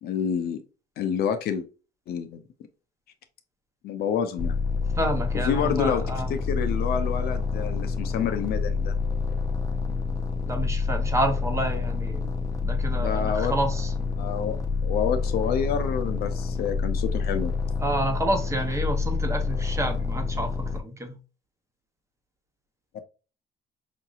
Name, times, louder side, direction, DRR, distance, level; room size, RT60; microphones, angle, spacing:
voice 1, 0.0-0.6 1.0-1.7 2.1-2.4 3.8-4.6 5.5-6.0 6.3-8.9 12.9-13.5 14.2-17.5 22.9-23.0, left 7 dB, 65° left, 0.7 m, -28 dB
sound 1, 4.4-20.8, left 4 dB, 20° left, 0.7 m, -28 dB
voice 2, 5.0-6.3 10.5-12.3 12.6-13.9 17.8-21.2, right 1 dB, 15° right, 1.0 m, -29 dB
5.1 x 2.9 x 2.4 m
cardioid pair, 110°, 17 cm